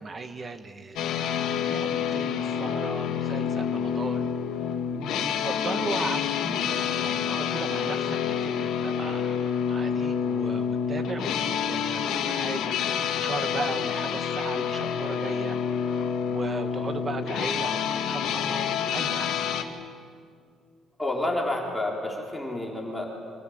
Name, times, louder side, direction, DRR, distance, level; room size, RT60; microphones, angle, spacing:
voice 1, 0.0-1.4 1.6-4.7 5.1-18.7 18.9-19.4, right 3 dB, 25° right, 9 dB, 1.4 m, -37 dB
sound 1, 1.0-19.6, left 7 dB, 70° left, 2.2 m, -28 dB
voice 2, 21.0-23.0, left 1 dB, 5° left, -2 dB, 3.4 m, -29 dB
28.5 x 25.5 x 7.9 m, 2.2 s
cardioid pair, 175°, 0 cm